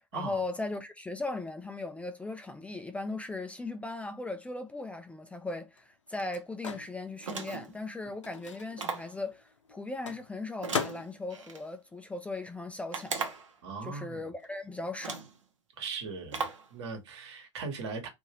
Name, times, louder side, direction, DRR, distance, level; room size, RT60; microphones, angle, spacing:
voice 1, 0.0-13.3 13.8-15.2, left 2 dB, 10° left, 0.4 m, -38 dB
Microwave oven, 4.8-12.9 13.2-15.1, left 6 dB, 90° left, 0.6 m, -42 dB
sound 1, 7.2-7.8 8.8-9.2 10.6-11.6 12.9-13.6 14.4-14.5 15.0-15.4 16.3-16.7, right 5 dB, 85° right, 0.9 m, -37 dB
voice 2, 13.6-14.2 15.8-18.1, right 4 dB, 65° right, 1.3 m, -39 dB
2.7 x 2.6 x 3.0 m
hypercardioid pair, 90°, 16 cm